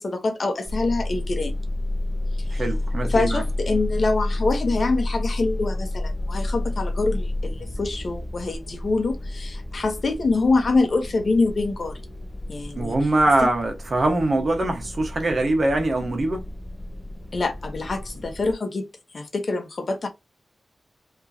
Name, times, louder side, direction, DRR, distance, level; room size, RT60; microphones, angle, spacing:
voice 1, 0.0-1.5 2.5-2.6 3.0-12.0 12.5-13.0 13.4-13.5 17.3-18.8 19.1-20.1, left 3 dB, 50° left, 0.9 m, -25 dB
sound 1, 0.6-18.5, left 1 dB, 15° left, 1.1 m, -30 dB
voice 2, 2.5-3.4 12.7-16.4, right 2 dB, 45° right, 1.2 m, -23 dB
5.3 x 3.0 x 2.7 m
wide cardioid pair, 155°, 0 cm